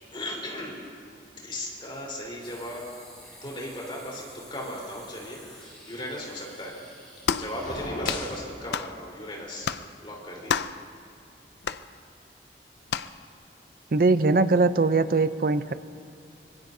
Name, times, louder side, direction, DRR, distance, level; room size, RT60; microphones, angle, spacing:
voice 1, 0.1-0.8 1.4-2.9 3.4-6.8 7.3-9.7 10.0-10.6, left 1 dB, 30° left, -3 dB, 3.9 m, -37 dB
sound 1, 2.4-7.9, equal, 5° left, 3.8 m, -50 dB
sound 2, 7.2-7.5 8.0-8.3 8.7-8.9 9.6-9.9 10.5-10.8 11.6-11.8 12.9-13.1, left 7 dB, 75° left, 0.4 m, -29 dB
sound 3, 7.5-8.4, left 2 dB, 50° left, 1.9 m, -35 dB
voice 2, 13.9-15.7, right 3 dB, 55° right, 13 dB, 0.5 m, -21 dB
25.0 x 21.0 x 2.7 m, 2.3 s
head